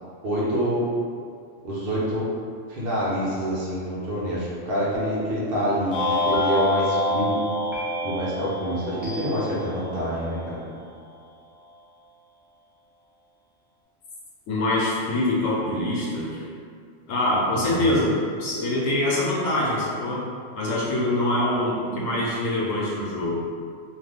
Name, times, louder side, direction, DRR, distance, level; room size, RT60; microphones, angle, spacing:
voice 1, 0.2-0.8 1.6-2.3 2.7-7.4 8.0-10.6 17.5-17.9, equal, 55° right, -7 dB, 0.8 m, -27 dB
sound 1, 4.9-5.5 6.3-6.9 7.7-8.3 9.0-9.6, right 1 dB, ahead, 0.3 m, -38 dB
sound 2, 5.9-10.2, left 1 dB, 60° left, 0.6 m, -26 dB
voice 2, 14.5-16.4 17.1-18.1 18.4-20.2 20.5-23.4, left 1 dB, 90° left, -5 dB, 1.1 m, -24 dB
2.6 x 2.4 x 3.4 m, 2.2 s
omnidirectional pair, 1.3 m